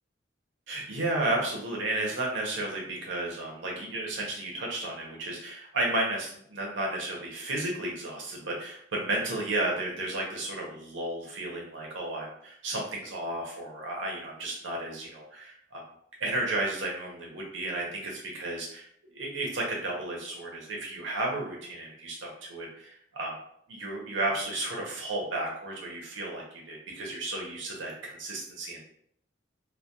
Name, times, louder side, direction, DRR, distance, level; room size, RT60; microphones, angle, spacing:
voice 1, 0.7-15.8 16.2-18.9 19.1-23.3 23.7-28.8, right 2 dB, 80° right, -2 dB, 0.7 m, -33 dB
2.2 x 2.2 x 2.7 m, 0.68 s
head